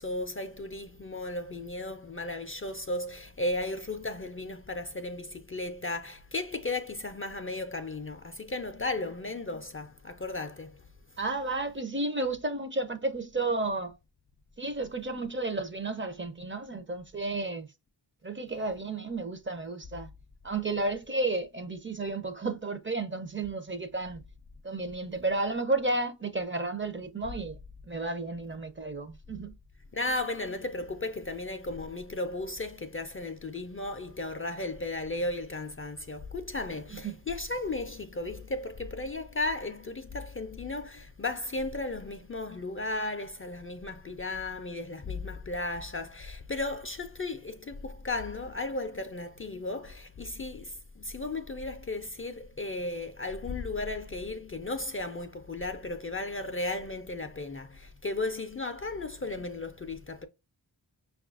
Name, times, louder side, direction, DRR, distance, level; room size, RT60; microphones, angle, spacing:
voice 1, 0.0-10.9 29.9-60.3, left 2 dB, 30° left, 0.4 m, -35 dB
voice 2, 11.2-14.0 14.6-17.7 18.2-20.1 20.4-24.2 24.6-27.6 27.9-29.5 37.0-37.2, right 2 dB, 30° right, 0.5 m, -32 dB
5.4 x 2.3 x 2.4 m
wide cardioid pair, 55°, 43 cm